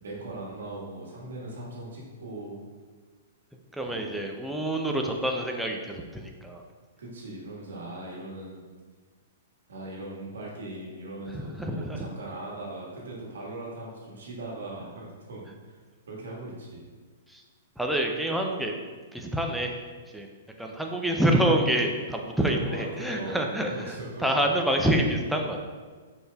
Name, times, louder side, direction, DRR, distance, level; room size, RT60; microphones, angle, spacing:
voice 1, 0.0-2.6 3.8-4.1 7.0-8.6 9.7-15.8 16.1-16.8 22.4-23.4 23.7-24.5, right 2 dB, 90° right, -3 dB, 1.5 m, -39 dB
voice 2, 3.8-6.6 11.3-12.1 17.3-17.4 17.8-18.7 19.1-19.7 20.1-20.3 20.6-25.7, right 1 dB, ahead, 1 dB, 0.4 m, -27 dB
4.8 x 4.4 x 2.3 m, 1.5 s
hypercardioid pair, 150°, 0 cm